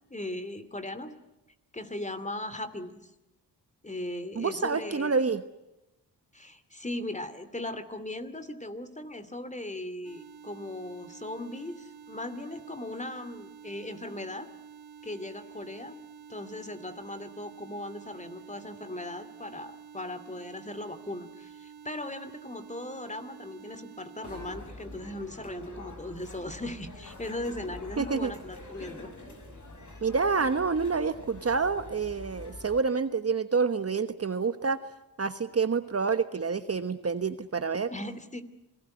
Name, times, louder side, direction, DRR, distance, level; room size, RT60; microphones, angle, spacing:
voice 1, 0.1-1.1 1.7-3.1 3.8-5.2 6.3-14.5 15.0-16.0 16.3-29.1 37.9-38.4, left 1 dB, 20° left, 12 dB, 2.7 m, -38 dB
voice 2, 4.3-5.4 28.0-28.3 30.0-34.8 35.2-37.9, right 5 dB, 35° right, 11 dB, 1.2 m, -28 dB
sound 1, 10.0-24.6, right 7 dB, 65° right, 2.3 m, -49 dB
sound 2, 24.2-32.8, left 1 dB, 45° left, 5.9 m, -45 dB
27.5 x 18.0 x 9.7 m, 0.94 s
cardioid pair, 55°, 40 cm